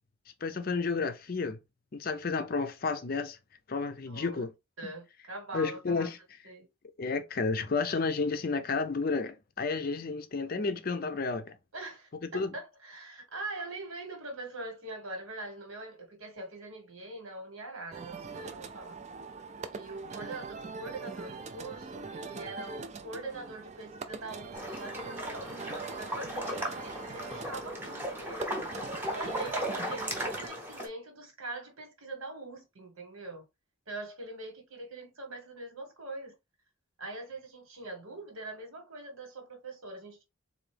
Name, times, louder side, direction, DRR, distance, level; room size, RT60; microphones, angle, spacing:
voice 1, 0.4-1.6 1.9-3.4 3.7-4.5 5.5-6.2 7.0-11.5 12.3-12.5, left 4 dB, 45° left, 0.5 m, -31 dB
voice 2, 4.1-4.4 4.8-6.1 6.4-6.6 11.7-19.0 19.7-25.6 26.0-28.7 29.1-33.4 33.9-36.3 37.0-40.2, right 2 dB, 80° right, 1.6 m, -43 dB
sound 1, 17.9-30.5, right 4 dB, 30° right, 0.4 m, -42 dB
sound 2, 24.5-30.9, equal, 10° right, 0.8 m, -36 dB
3.9 x 2.6 x 3.3 m
head